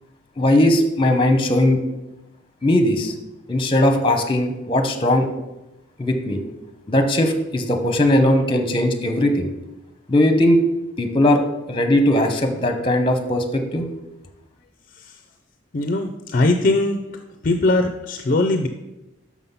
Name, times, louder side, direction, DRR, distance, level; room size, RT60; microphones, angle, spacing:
voice 1, 0.4-1.8 2.6-3.1 3.5-5.3 6.0-6.4 6.9-9.5 10.1-10.6 11.0-11.4 11.7-13.9, left 1 dB, 25° left, 6 dB, 0.8 m, -18 dB
voice 2, 15.7-18.7, left 2 dB, 45° left, 7 dB, 0.4 m, -21 dB
6.1 x 5.6 x 5.5 m, 0.96 s
head